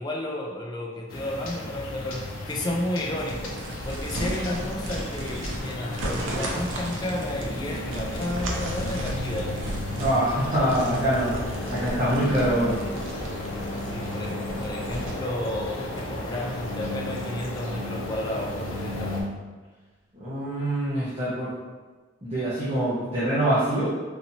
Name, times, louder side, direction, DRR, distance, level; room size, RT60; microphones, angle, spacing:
voice 1, 0.0-3.6 3.8-9.7 13.9-19.3, left 1 dB, 20° left, -2 dB, 0.4 m, -32 dB
sound 1, 1.1-19.2, left 1 dB, 85° left, 0.6 m, -33 dB
sound 2, 3.2-15.1, right 1 dB, 80° right, 0.6 m, -36 dB
voice 2, 10.0-11.3 11.7-12.8 20.1-21.5 22.2-23.9, right 1 dB, 30° right, -11 dB, 0.9 m, -24 dB
4.1 x 2.8 x 2.7 m, 1.3 s
head